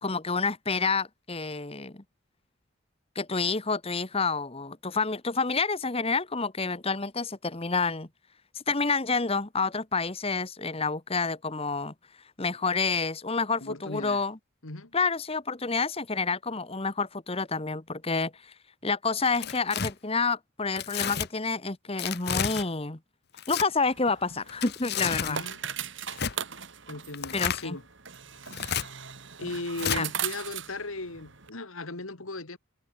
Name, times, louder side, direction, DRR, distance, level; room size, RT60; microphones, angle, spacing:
voice 1, 0.0-1.9 3.1-8.1 8.5-11.9 12.4-14.4 14.9-18.5 18.8-23.0 23.5-25.4 27.3-27.8 29.9-30.1, left 4 dB, 25° left, 1.2 m, -29 dB
voice 2, 13.6-14.2 14.6-14.9 25.3-25.6 26.9-27.8 29.4-32.6, left 2 dB, 75° left, 2.3 m, -37 dB
Tearing, 19.2-19.9 20.8-21.3 22.0-22.6 23.3-23.7 24.5-25.4 26.1-26.3 27.1-27.6 28.5-28.8 29.8-30.0, left 8 dB, 50° left, 1.0 m, -31 dB
sound 1, 23.8-31.5, right 8 dB, 55° right, 2.5 m, -39 dB
head